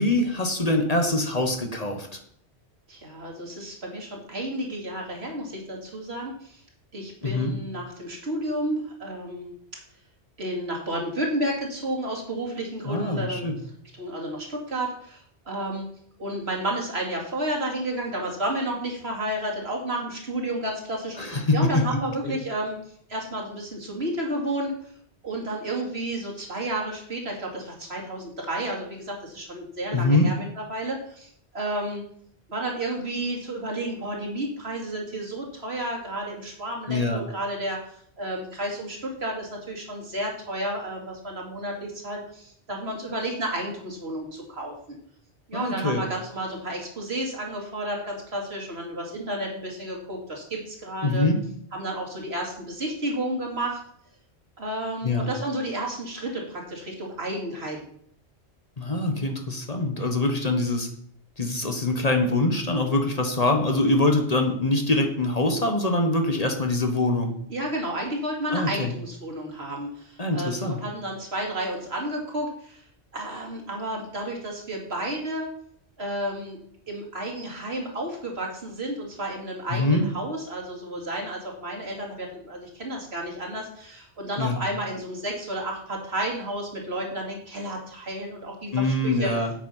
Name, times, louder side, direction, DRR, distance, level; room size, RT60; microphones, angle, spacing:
voice 1, 0.0-2.1 7.2-7.5 12.8-13.6 21.2-21.8 22.2-22.4 29.9-30.3 36.9-37.2 45.5-46.0 51.0-51.4 55.0-55.3 58.8-60.9 61.4-67.3 68.5-68.9 70.2-70.8 79.7-80.0 84.4-84.6 88.7-89.5, left 2 dB, 35° left, 4 dB, 1.5 m, -24 dB
voice 2, 2.9-6.6 6.9-9.5 10.4-13.5 14.0-15.8 16.2-22.8 23.1-24.7 25.2-32.1 32.5-45.0 45.5-51.3 51.7-53.8 54.6-57.8 67.5-72.8 73.1-75.5 76.0-76.6 76.9-89.3, right 1 dB, 70° right, 0 dB, 2.8 m, -31 dB
8.6 x 8.1 x 5.7 m, 0.64 s
omnidirectional pair, 1.1 m